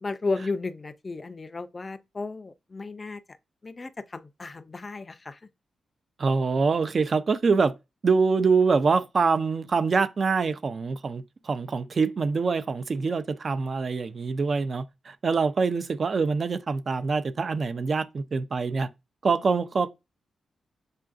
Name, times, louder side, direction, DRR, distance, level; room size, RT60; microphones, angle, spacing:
voice 1, 0.0-3.2 3.6-5.5, left 3 dB, 35° left, 0.4 m, -34 dB
voice 2, 6.2-7.7 8.0-18.9 19.2-19.9, right 4 dB, 50° right, 0.4 m, -25 dB
6.6 x 2.5 x 2.4 m
cardioid pair, 70°, 0 cm